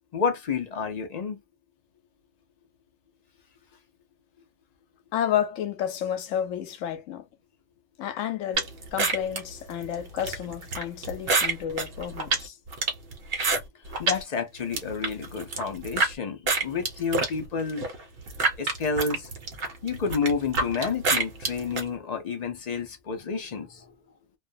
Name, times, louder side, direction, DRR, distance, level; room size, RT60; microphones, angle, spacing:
voice 1, 0.1-1.4 14.0-17.9 18.6-19.3 19.8-23.9, left 5 dB, 55° left, 0.4 m, -30 dB
voice 2, 5.1-7.3 8.0-12.6, left 10 dB, 90° left, 1.0 m, -31 dB
sound 1, 8.5-14.2 14.6-16.1 16.5-21.8, right 3 dB, 55° right, 0.9 m, -28 dB
2.4 x 2.2 x 2.5 m
omnidirectional pair, 1.3 m